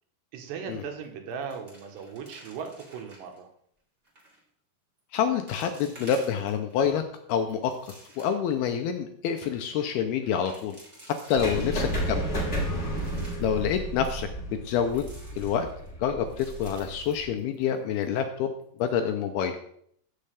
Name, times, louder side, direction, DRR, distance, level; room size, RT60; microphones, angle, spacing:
voice 1, 0.3-3.5 11.5-11.6 13.2-13.5, right 6 dB, 75° right, 4 dB, 3.2 m, -38 dB
sound 1, 0.7-1.0 1.3-3.4 4.0-4.4 5.0-5.1 5.5-6.8 7.3-8.5 8.9-9.0 9.2-9.5 10.2-12.1 12.6-13.6 14.7-15.9 16.3-17.8 18.0-18.1 18.6-18.9, right 1 dB, 20° right, 2.6 m, -52 dB
voice 2, 5.1-7.0 7.3-7.7 8.2-10.8 11.3-12.3 13.4-15.1 15.4-15.7 16.0-18.5 18.8-19.5, left 8 dB, 80° left, 6 dB, 2.4 m, -27 dB
sound 2, 11.4-17.3, equal, 20° left, 1.9 m, -32 dB
15.0 x 6.6 x 3.4 m, 0.66 s
omnidirectional pair, 5.0 m